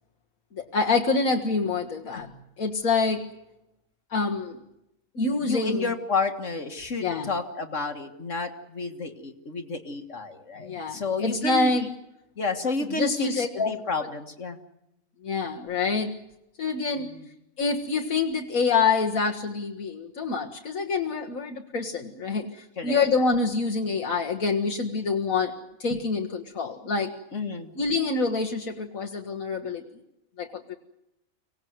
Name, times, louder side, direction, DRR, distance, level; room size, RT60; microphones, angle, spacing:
voice 1, 0.6-2.3 2.6-3.3 4.1-4.6 5.2-5.9 7.0-7.3 10.6-11.9 13.0-13.7 15.2-16.1 16.6-17.1 17.6-25.5 25.8-27.1 27.8-29.8 30.4-30.7, left 4 dB, 80° left, 2 dB, 2.0 m, -26 dB
voice 2, 5.4-11.9 12.4-14.6 16.9-17.3 22.8-23.1 27.3-27.7, left 3 dB, 60° left, 6 dB, 2.0 m, -31 dB
24.5 x 18.5 x 9.5 m, 0.86 s
omnidirectional pair, 1.4 m